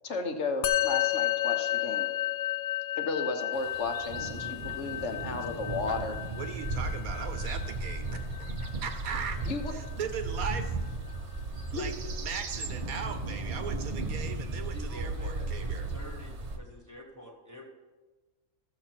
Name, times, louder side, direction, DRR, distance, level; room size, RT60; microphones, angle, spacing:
voice 1, 0.0-2.1 3.0-6.2 9.5-9.7 11.7-11.9, left 3 dB, 55° left, 5 dB, 1.2 m, -34 dB
Musical instrument, 0.6-10.2, left 13 dB, 80° left, 1.0 m, -33 dB
sound 1, 3.5-16.6, right 2 dB, 35° right, 0.7 m, -36 dB
voice 2, 6.4-11.0 11.7-11.9 12.2-15.9, right 6 dB, 85° right, 8 dB, 1.4 m, -39 dB
sound 2, 7.8-12.7, right 5 dB, 70° right, 1.2 m, -47 dB
voice 3, 14.7-17.7, equal, 15° right, 1 dB, 1.2 m, -47 dB
14.0 x 7.0 x 4.4 m, 1.3 s
omnidirectional pair, 1.5 m